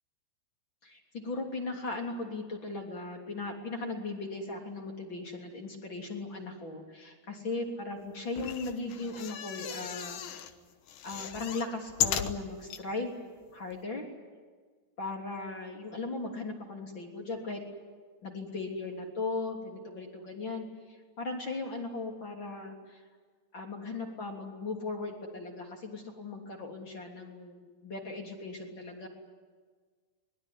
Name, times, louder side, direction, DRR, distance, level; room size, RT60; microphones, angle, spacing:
voice 1, 0.8-10.5 11.0-13.2 13.5-14.1 15.0-17.6 18.2-23.0 23.5-29.1, left 3 dB, 30° left, 2 dB, 3.4 m, -38 dB
sound 1, 8.3-10.5 10.9-12.8 13.4-13.5 13.7-13.8, left 9 dB, 70° left, 1.9 m, -35 dB
24.0 x 21.0 x 9.9 m, 1.5 s
omnidirectional pair, 5.3 m